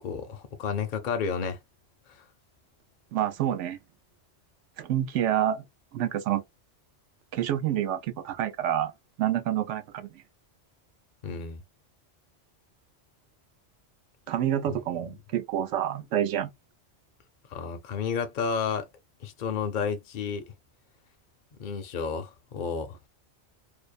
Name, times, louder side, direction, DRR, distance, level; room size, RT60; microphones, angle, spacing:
voice 1, 0.0-1.6 2.1-2.2 11.2-11.6 14.7-14.8 17.5-18.9 19.2-20.4 21.6-23.1, left 6 dB, 55° left, 0.6 m, -31 dB
voice 2, 3.1-3.8 4.8-5.6 5.9-6.4 7.3-8.9 9.2-10.1 14.3-16.5, right 11 dB, 90° right, 0.9 m, -28 dB
2.7 x 2.0 x 2.3 m
omnidirectional pair, 1.2 m